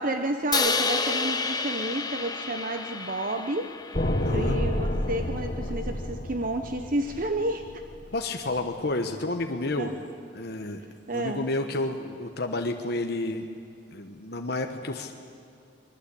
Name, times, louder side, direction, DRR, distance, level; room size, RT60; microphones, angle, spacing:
voice 1, 0.0-3.7 4.3-7.7 9.8-10.0 11.1-11.5, right 1 dB, 50° right, 6 dB, 1.0 m, -30 dB
Crash cymbal, 0.5-4.7, left 4 dB, 20° left, 1.2 m, -30 dB
sound 1, 3.9-8.1, left 1 dB, 40° left, 1.7 m, -29 dB
voice 2, 4.2-4.6 8.1-9.9 10.3-10.8 11.1-13.4 13.9-15.1, left 2 dB, 60° left, 4 dB, 1.2 m, -30 dB
25.0 x 21.5 x 8.5 m, 2.3 s
head